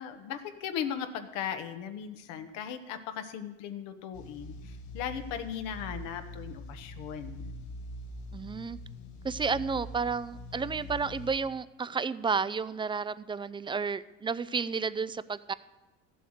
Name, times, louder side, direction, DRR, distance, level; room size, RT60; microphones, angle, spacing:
voice 1, 0.0-7.5, left 8 dB, 80° left, 7 dB, 1.3 m, -38 dB
sound 1, 4.1-11.4, left 1 dB, 65° left, 1.5 m, -43 dB
voice 2, 8.3-8.8 9.2-15.5, right 5 dB, 15° right, 16 dB, 0.4 m, -31 dB
14.0 x 7.8 x 6.5 m, 1.0 s
supercardioid pair, 90°, 32 cm